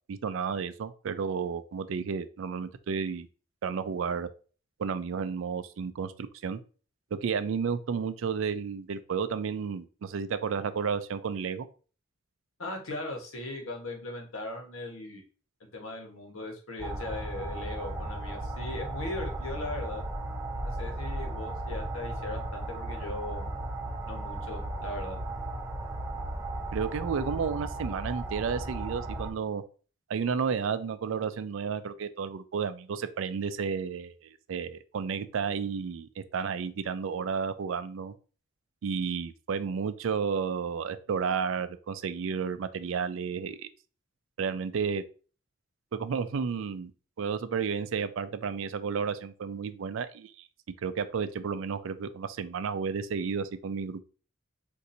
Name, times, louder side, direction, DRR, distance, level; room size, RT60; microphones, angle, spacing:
voice 1, 0.1-3.3 3.6-4.3 4.8-6.6 7.1-11.7 26.7-29.6 30.1-38.1 38.8-43.7 44.4-45.0 45.9-46.9 47.2-50.3 50.8-54.0, right 6 dB, 75° right, 12 dB, 0.4 m, -32 dB
voice 2, 12.6-15.2 15.6-20.0 20.6-23.5 24.1-25.2, left 2 dB, 90° left, 1 dB, 1.1 m, -38 dB
sound 1, 16.8-29.3, right 1 dB, 15° right, 0.5 m, -35 dB
4.1 x 2.6 x 2.6 m, 0.38 s
head